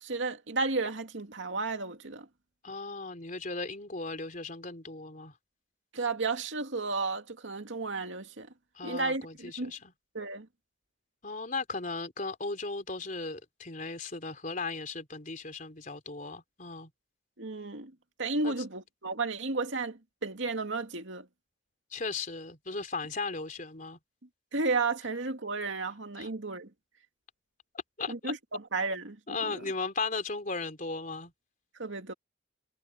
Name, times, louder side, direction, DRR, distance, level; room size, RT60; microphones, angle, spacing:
voice 1, 0.0-2.3 5.9-8.5 8.8-9.7 10.1-10.5 17.4-17.9 18.2-21.3 24.5-26.7 28.1-29.6 31.8-32.1, right 3 dB, 80° right, 2.3 m, -33 dB
voice 2, 2.6-5.3 8.8-9.9 11.2-16.9 18.4-18.5 21.9-24.0 26.2-26.3 28.0-28.3 29.3-31.3, left 3 dB, 45° left, 3.8 m, -36 dB
head